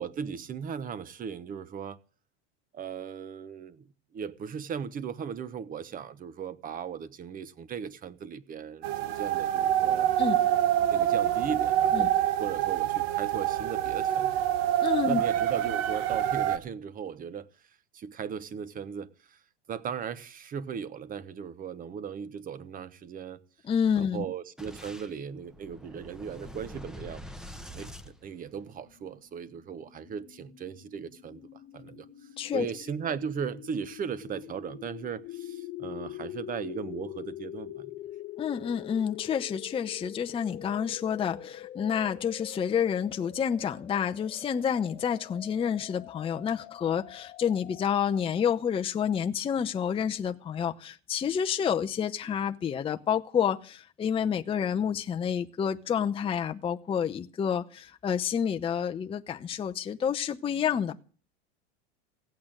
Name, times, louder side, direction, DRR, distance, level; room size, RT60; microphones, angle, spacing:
voice 1, 0.0-2.0 2.7-3.9 4.1-10.1 10.9-14.3 15.1-17.5 17.9-19.4 19.7-23.4 23.9-27.3 27.7-32.1 32.5-37.9, right 7 dB, 25° right, 1.1 m, -37 dB
sound 1, 8.8-16.6, right 11 dB, 65° right, 1.5 m, -26 dB
voice 2, 14.8-15.2 23.6-24.2 32.4-32.7 38.4-61.0, left 8 dB, 15° left, 0.7 m, -29 dB
Boom, 24.6-29.0, equal, ahead, 1.0 m, -45 dB
sound 2, 28.7-47.9, left 12 dB, 35° left, 2.1 m, -45 dB
16.0 x 8.6 x 8.9 m
supercardioid pair, 135°, 33 cm